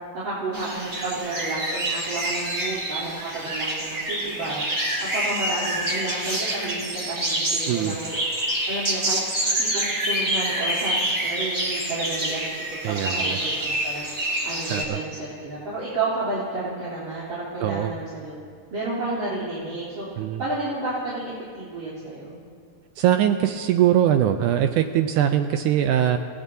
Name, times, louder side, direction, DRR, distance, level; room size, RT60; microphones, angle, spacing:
voice 1, 0.1-4.7 5.0-8.2 8.7-9.2 9.6-12.6 12.9-14.1 14.4-18.3 18.7-20.1 20.4-22.4, right 2 dB, 55° right, -9 dB, 4.6 m, -31 dB
sound 1, 0.5-14.8, right 1 dB, 30° right, 1.6 m, -27 dB
voice 2, 12.8-13.4 14.7-15.0 17.6-17.9 20.2-20.4 23.0-26.2, right 10 dB, 80° right, 7 dB, 2.0 m, -21 dB
29.5 x 16.0 x 2.8 m, 2.1 s
omnidirectional pair, 3.8 m